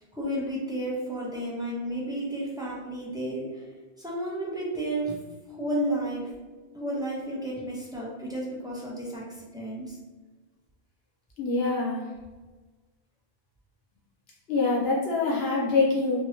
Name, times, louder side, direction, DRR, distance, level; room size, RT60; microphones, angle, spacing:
voice 1, 0.1-3.6 4.0-5.2 5.5-6.3 6.7-10.0, right 1 dB, 5° right, -5 dB, 0.5 m, -32 dB
voice 2, 11.4-12.0 14.5-16.2, left 3 dB, 80° left, -5 dB, 1.0 m, -25 dB
2.9 x 2.6 x 2.7 m, 1.3 s
omnidirectional pair, 1.0 m